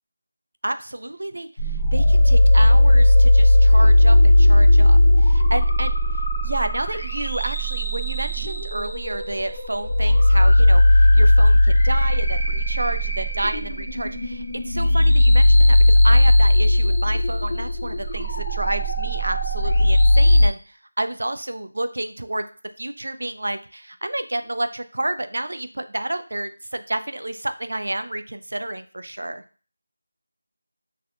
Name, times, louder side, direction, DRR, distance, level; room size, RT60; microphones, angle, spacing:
voice 1, 0.6-22.4 22.8-29.4, right 1 dB, 80° right, 10 dB, 0.3 m, -30 dB
sound 1, 1.6-20.5, left 1 dB, 40° left, 0.7 m, -17 dB
3.3 x 2.1 x 2.4 m, 0.38 s
figure-of-eight pair, 175°, 0 cm